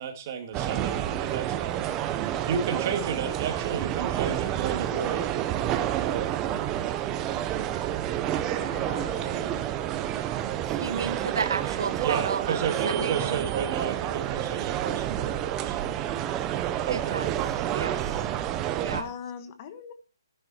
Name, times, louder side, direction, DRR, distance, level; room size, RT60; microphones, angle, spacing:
voice 1, 0.0-1.8 2.2-6.4 12.0-15.8 16.9-17.2, right 7 dB, 30° right, 2.4 m, -32 dB
sound 1, 0.5-19.0, right 11 dB, 15° right, 0.7 m, -29 dB
voice 2, 8.6-9.7 18.9-19.9, left 7 dB, 30° left, 1.3 m, -40 dB
voice 3, 10.7-13.4 16.9-18.2 18.8-19.1, right 5 dB, 65° right, 1.2 m, -33 dB
15.0 x 10.5 x 4.3 m
hypercardioid pair, 165°, 2 cm